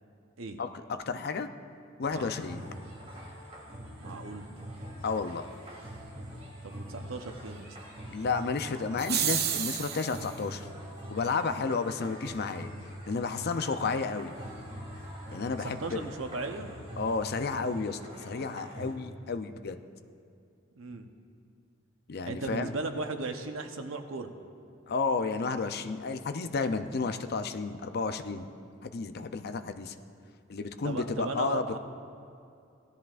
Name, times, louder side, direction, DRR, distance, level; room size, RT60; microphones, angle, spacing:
voice 1, 0.6-1.5 2.0-2.6 5.0-5.5 8.1-10.7 11.1-12.7 13.1-14.3 15.3-16.1 17.0-19.8 22.1-22.7 24.9-28.5 28.8-29.9 30.5-31.8, left 4 dB, 50° left, 9 dB, 0.5 m, -32 dB
sound 1, 2.0-18.9, equal, 30° right, 2.3 m, -44 dB
voice 2, 4.0-4.4 6.6-7.7 15.6-16.7 20.8-21.1 22.3-24.3 30.8-31.8, right 3 dB, 90° right, 6 dB, 0.8 m, -36 dB
sound 2, 9.0-10.3, right 9 dB, 55° right, 0.6 m, -30 dB
17.0 x 13.0 x 2.5 m, 2.5 s
head